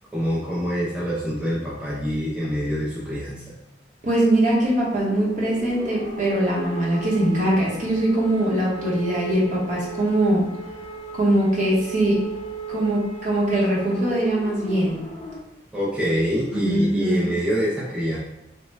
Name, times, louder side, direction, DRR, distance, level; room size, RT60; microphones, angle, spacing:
voice 1, 0.1-3.4 15.7-18.2, equal, 5° right, -8 dB, 0.5 m, -25 dB
voice 2, 4.0-10.4 11.1-12.2 12.7-15.0 16.5-17.2, right 1 dB, 45° right, -5 dB, 0.9 m, -22 dB
sound 1, 4.5-15.4, right 3 dB, 40° left, 0.6 m, -35 dB
3.1 x 2.1 x 3.2 m, 0.88 s
head